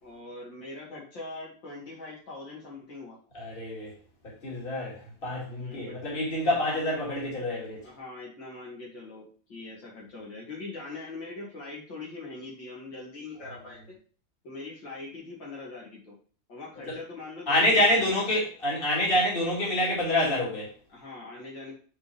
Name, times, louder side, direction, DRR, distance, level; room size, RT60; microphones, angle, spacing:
voice 1, 0.0-3.2 5.6-6.0 7.8-13.8 14.4-16.1 16.5-18.2 20.9-21.7, left 3 dB, 75° left, -4 dB, 3.2 m, -42 dB
voice 2, 3.3-3.9 4.2-7.8 16.9-17.0 17.5-20.7, left 1 dB, 30° left, -4 dB, 2.7 m, -27 dB
8.2 x 4.4 x 3.5 m, 0.41 s
omnidirectional pair, 2.0 m